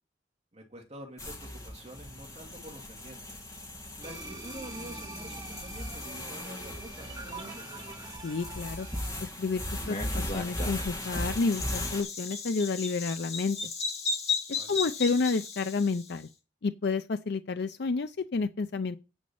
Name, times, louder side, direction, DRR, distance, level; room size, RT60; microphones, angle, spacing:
voice 1, 0.5-3.4 4.0-7.6 14.5-14.8, right 1 dB, 35° right, 2.5 m, -47 dB
sound 1, 1.2-12.0, left 1 dB, 20° left, 2.2 m, -38 dB
sound 2, 4.0-9.2, right 2 dB, 20° right, 4.2 m, -45 dB
voice 2, 8.2-8.9 9.2-13.6 14.7-16.3 16.6-19.0, left 4 dB, 60° left, 0.5 m, -30 dB
Bird vocalization bird call bird song, 9.8-16.1, left 4 dB, 35° left, 2.0 m, -35 dB
9.5 x 5.2 x 7.0 m
head